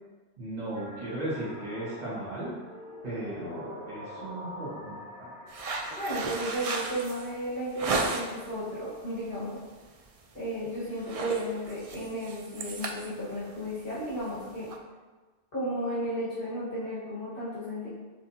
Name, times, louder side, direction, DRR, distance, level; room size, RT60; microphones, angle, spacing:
voice 1, 0.4-2.5 3.0-5.3, right 1 dB, 35° right, -10 dB, 1.5 m, -36 dB
sound 1, 0.7-6.6, equal, 15° left, 1.1 m, -45 dB
sound 2, 5.5-8.5 8.9-9.3 9.6-9.8 10.2-10.6 10.8-14.8, right 3 dB, 65° right, 0.3 m, -34 dB
voice 2, 6.0-9.6 10.3-14.7 15.5-17.9, equal, 55° left, -11 dB, 1.7 m, -34 dB
5.8 x 3.3 x 2.7 m, 1.3 s
omnidirectional pair, 1.2 m